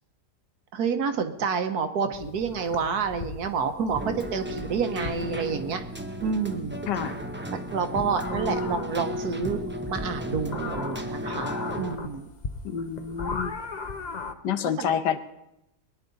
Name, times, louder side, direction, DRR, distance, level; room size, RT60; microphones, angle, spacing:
voice 1, 0.7-5.8 6.2-6.8 7.5-9.6 9.9-12.3 14.8-14.9, right 5 dB, 70° right, 7 dB, 1.5 m, -29 dB
sound 1, 2.1-14.3, left 4 dB, 40° left, 0.7 m, -39 dB
Keyboard (musical), 4.0-12.0, equal, 20° right, 0.3 m, -34 dB
voice 2, 6.9-7.2 12.6-13.5 14.4-15.2, left 8 dB, 80° left, 10 dB, 1.5 m, -28 dB
22.0 x 10.5 x 4.0 m, 0.86 s
omnidirectional pair, 1.8 m